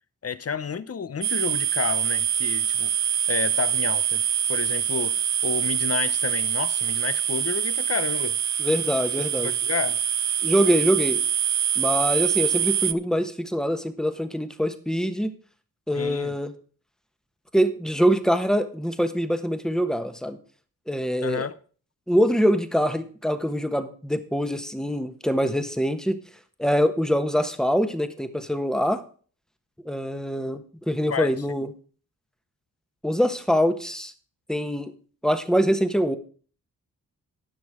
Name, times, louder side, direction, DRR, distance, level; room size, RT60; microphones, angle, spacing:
voice 1, 0.2-2.9 3.3-4.2 4.5-5.2 5.4-8.4 9.4-10.0 15.9-16.3 21.2-21.6 31.1-31.3, left 6 dB, 40° left, 15 dB, 0.8 m, -30 dB
sound 1, 1.2-12.9, right 10 dB, 50° right, 0.5 m, -25 dB
voice 2, 8.6-9.5 10.4-11.2 11.8-15.3 15.9-16.5 17.5-20.4 20.9-21.5 22.1-26.2 26.6-29.0 29.8-31.7 33.0-34.1 34.5-34.9 35.2-36.2, equal, ahead, 9 dB, 1.2 m, -24 dB
18.0 x 6.2 x 3.7 m, 0.42 s
cardioid pair, 65°, 36 cm